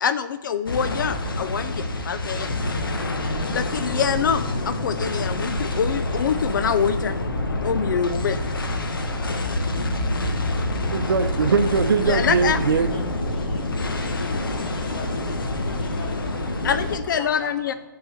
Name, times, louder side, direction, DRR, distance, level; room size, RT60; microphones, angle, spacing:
voice 1, 0.0-2.5 3.5-7.2 7.6-8.4 12.1-12.6 16.6-17.7, left 7 dB, 65° left, 11 dB, 0.4 m, -25 dB
sound 1, 0.7-17.0, left 1 dB, 90° left, 1.1 m, -27 dB
voice 2, 10.9-12.9, right 5 dB, 85° right, 10 dB, 0.6 m, -21 dB
voice 3, 12.1-17.7, left 3 dB, 40° left, 0 dB, 2.0 m, -41 dB
9.4 x 3.9 x 6.3 m, 1.2 s
hypercardioid pair, 145°, 11 cm